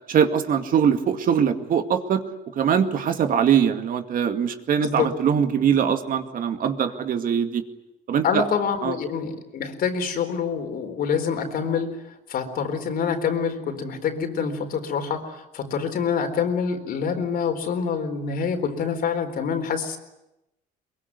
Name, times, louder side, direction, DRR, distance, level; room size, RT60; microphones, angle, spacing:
voice 1, 0.1-2.2 2.5-7.6 8.1-8.4 8.8-9.0, right 8 dB, 55° right, 7 dB, 2.2 m, -22 dB
voice 2, 4.8-5.1 8.2-12.0 12.3-20.0, left 6 dB, 60° left, 6 dB, 4.2 m, -26 dB
23.0 x 22.5 x 9.7 m, 0.92 s
cardioid pair, 110°, 17 cm